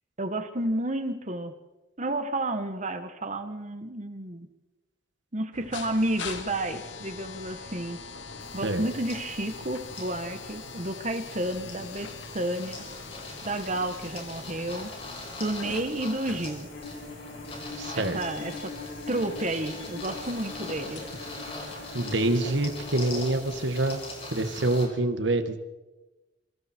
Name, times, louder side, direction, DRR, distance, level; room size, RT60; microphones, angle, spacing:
voice 1, 0.2-1.5 2.0-4.5 5.3-8.0 8.5-12.8 13.4-14.9 15.4-16.7 17.9-18.7 19.1-21.1, right 1 dB, 40° right, 8 dB, 1.5 m, -31 dB
sound 1, 5.5-23.7, left 4 dB, 80° left, 2.2 m, -44 dB
sound 2, 8.4-24.9, left 2 dB, 30° left, 6.8 m, -42 dB
Bowed string instrument, 16.7-23.3, left 3 dB, 65° left, 6.6 m, -42 dB
voice 2, 17.8-18.2 21.9-24.0 24.3-25.6, right 2 dB, 75° right, 8 dB, 1.9 m, -26 dB
27.0 x 26.0 x 4.6 m, 1.1 s
head